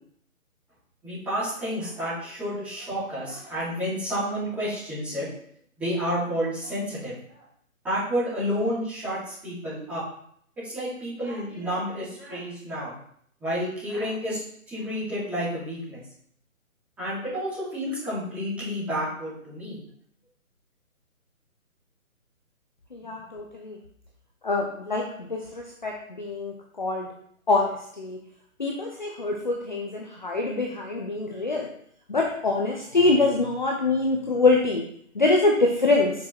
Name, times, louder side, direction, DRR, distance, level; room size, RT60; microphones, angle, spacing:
voice 1, 1.0-5.3 5.8-7.1 7.8-10.0 10.6-12.9 13.4-14.4 14.7-16.0 17.0-19.8, equal, 5° right, -16 dB, 3.4 m, -30 dB
voice 2, 22.9-23.8 24.4-25.0 25.3-26.5 26.8-27.1 27.5-28.2 28.6-31.7 32.1-34.8 35.2-36.1, left 3 dB, 35° left, 1 dB, 0.8 m, -24 dB
7.2 x 6.4 x 4.4 m, 0.65 s
hypercardioid pair, 175°, 42 cm